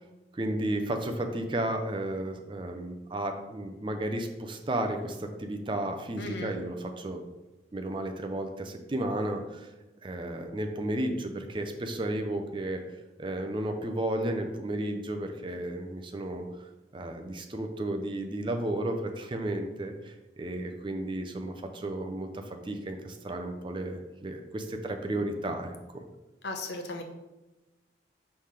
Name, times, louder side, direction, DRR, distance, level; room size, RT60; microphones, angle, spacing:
voice 1, 0.3-7.2 7.7-9.7 10.0-12.8 13.2-26.0, right 1 dB, 25° right, 5 dB, 0.5 m, -33 dB
voice 2, 6.2-6.5 26.4-27.0, left 2 dB, 65° left, 4 dB, 0.8 m, -36 dB
5.5 x 3.3 x 5.7 m, 1.1 s
head